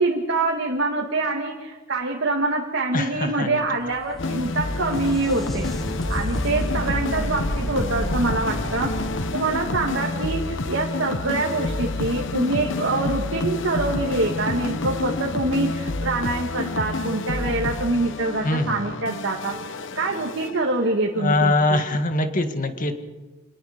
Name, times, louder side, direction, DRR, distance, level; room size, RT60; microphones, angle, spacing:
voice 1, 0.0-5.7 6.1-9.0 9.3-19.6 20.0-21.8, right 2 dB, 65° right, 0 dB, 2.1 m, -25 dB
voice 2, 2.9-3.6 18.4-18.8 21.2-22.9, left 2 dB, 40° left, 6 dB, 1.8 m, -22 dB
sound 1, 3.6-11.2 14.6-14.7 15.8-15.9, equal, ahead, 1.6 m, -32 dB
sound 2, 4.2-20.9, left 2 dB, 65° left, 1.0 m, -29 dB
27.5 x 19.0 x 5.2 m, 1.2 s
head